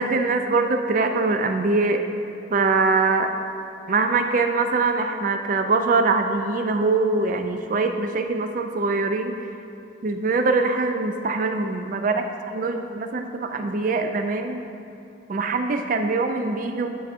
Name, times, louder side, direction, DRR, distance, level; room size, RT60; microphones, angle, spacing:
voice 1, 0.0-2.0 2.5-3.3 3.9-9.4 10.0-12.2 12.5-14.6 15.3-16.9, right 3 dB, 40° right, 6 dB, 0.3 m, -23 dB
9.8 x 5.4 x 2.6 m, 2.7 s
head